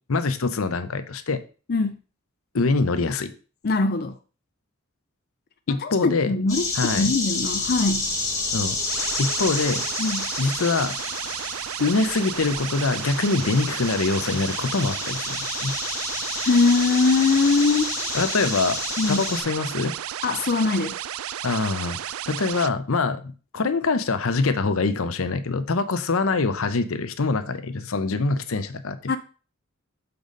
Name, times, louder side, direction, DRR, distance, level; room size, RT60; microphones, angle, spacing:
voice 1, 0.1-1.4 2.5-3.3 5.7-6.3 6.8-7.1 8.5-8.8 9.2-9.8 10.4-11.0 11.8-15.7 18.1-18.8 19.1-19.9 21.4-29.0, left 3 dB, 80° left, 0.7 m, -24 dB
voice 2, 3.6-4.2 5.7-8.1 10.0-10.3 16.4-17.9 19.0-19.3 20.2-21.0 29.1-29.2, left 3 dB, 45° left, 0.4 m, -22 dB
sound 1, 6.5-19.4, left 3 dB, 15° left, 1.9 m, -30 dB
sound 2, 7.4-11.4, right 2 dB, 35° right, 1.2 m, -45 dB
sound 3, 8.9-22.7, right 11 dB, 80° right, 0.4 m, -33 dB
6.9 x 4.0 x 5.2 m
head